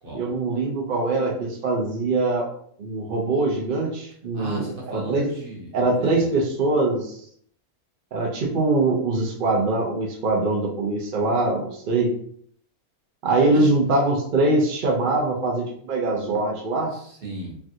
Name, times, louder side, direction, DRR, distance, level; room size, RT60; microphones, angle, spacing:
voice 1, 0.1-2.5 2.8-5.3 5.7-7.2 8.1-12.1 13.2-16.9, right 2 dB, 75° right, -1 dB, 0.4 m, -23 dB
voice 2, 4.3-5.7 6.0-6.4 13.5-13.9 16.9-17.6, right 1 dB, 45° right, -3 dB, 0.9 m, -36 dB
3.2 x 2.3 x 2.7 m, 0.62 s
omnidirectional pair, 1.6 m